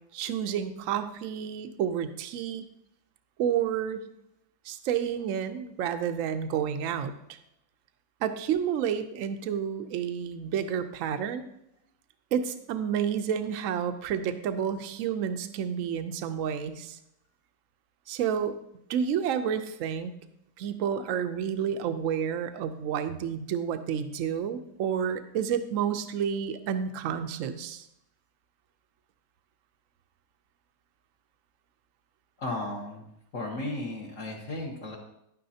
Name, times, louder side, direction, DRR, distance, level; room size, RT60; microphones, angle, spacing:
voice 1, 0.1-2.7 3.4-4.0 4.6-7.4 8.2-11.5 12.3-17.0 18.1-18.6 18.9-20.1 20.6-27.9, right 8 dB, 65° right, 9 dB, 0.9 m, -30 dB
voice 2, 32.4-33.1 33.3-35.0, left 2 dB, 50° left, -2 dB, 1.3 m, -34 dB
11.0 x 9.5 x 2.8 m, 0.78 s
omnidirectional pair, 1.8 m